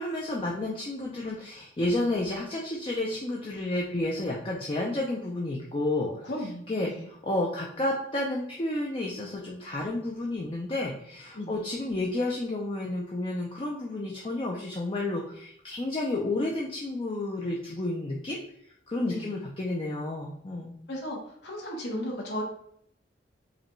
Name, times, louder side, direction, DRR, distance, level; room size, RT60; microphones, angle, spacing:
voice 1, 0.0-6.3 6.7-18.4 18.9-20.8, left 2 dB, 30° left, -2 dB, 0.4 m, -31 dB
voice 2, 6.1-7.1 11.3-11.5 19.0-19.3 20.9-22.4, left 1 dB, 65° left, -1 dB, 0.9 m, -35 dB
4.8 x 2.2 x 3.0 m, 0.68 s
head